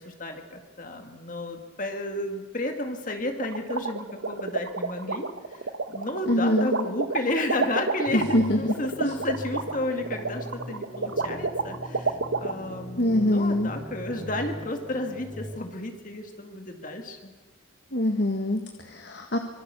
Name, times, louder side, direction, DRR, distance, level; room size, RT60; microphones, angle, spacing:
voice 1, 0.0-5.6 5.9-17.3, left 1 dB, 40° left, 4 dB, 2.1 m, -32 dB
sound 1, 3.4-12.5, right 4 dB, 75° right, 1.3 m, -29 dB
voice 2, 6.3-6.7 8.1-8.7 9.0-9.1 13.0-13.7 17.9-19.4, left 1 dB, 55° left, 4 dB, 1.8 m, -24 dB
sound 2, 8.1-15.6, equal, 25° right, 2.6 m, -40 dB
25.5 x 23.5 x 6.9 m, 1.2 s
head